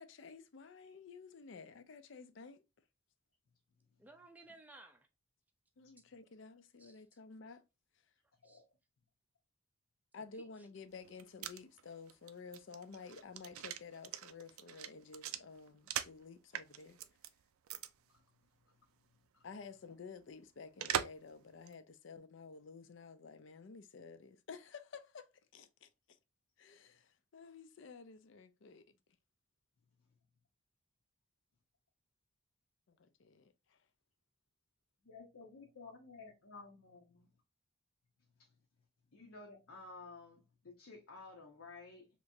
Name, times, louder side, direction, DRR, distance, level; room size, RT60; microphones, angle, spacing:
voice 1, 0.0-2.6 5.8-7.6 10.1-17.0 19.4-25.3 25.5-26.2 26.6-28.8 32.9-33.8, left 5 dB, 60° left, 0.4 m, -52 dB
voice 2, 4.0-5.1 6.8-7.0 8.4-8.6 10.2-10.7, right 2 dB, 10° right, 0.4 m, -58 dB
sound 1, 11.0-16.2 16.5-17.3 17.7-17.9 18.2-18.3 20.8-21.3 21.7-21.8, right 10 dB, 85° right, 0.3 m, -41 dB
voice 3, 35.0-37.3 38.4-38.5 39.1-42.1, left 3 dB, 75° left, 0.8 m, -53 dB
3.3 x 2.9 x 2.6 m
head